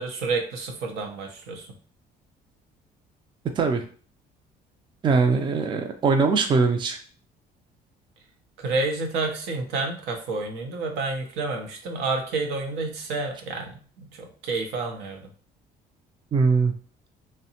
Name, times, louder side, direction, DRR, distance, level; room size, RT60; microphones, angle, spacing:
voice 1, 0.0-1.7 8.6-15.2, right 3 dB, 90° right, 3 dB, 0.6 m, -29 dB
voice 2, 5.0-7.0 16.3-16.7, right 4 dB, 30° right, 6 dB, 0.4 m, -21 dB
2.7 x 2.1 x 2.7 m, 0.41 s
cardioid pair, 110°, 17 cm